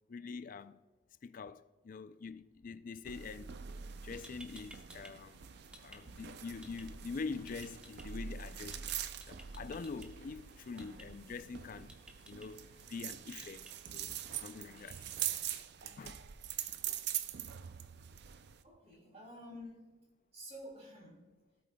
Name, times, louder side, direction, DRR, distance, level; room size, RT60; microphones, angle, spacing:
voice 1, 0.1-0.8 1.2-3.5 3.9-5.4 5.8-8.9 9.3-11.9 12.2-15.1 15.6-15.7 15.9-16.2, left 4 dB, 45° left, 0.4 m, -45 dB
sound 1, 3.0-18.6, right 10 dB, 55° right, 0.4 m, -44 dB
sound 2, 4.2-5.1 5.4-6.0 6.6-6.8 7.5-8.0 8.7-8.9 9.2-10.1 10.8-11.0 11.9-12.5 13.4-13.7, equal, 5° right, 0.9 m, -54 dB
sound 3, 5.2-15.6, right 2 dB, 75° right, 3.0 m, -66 dB
voice 2, 18.6-20.0 20.3-21.3, equal, 35° right, 2.8 m, -51 dB
17.5 x 8.4 x 2.2 m
head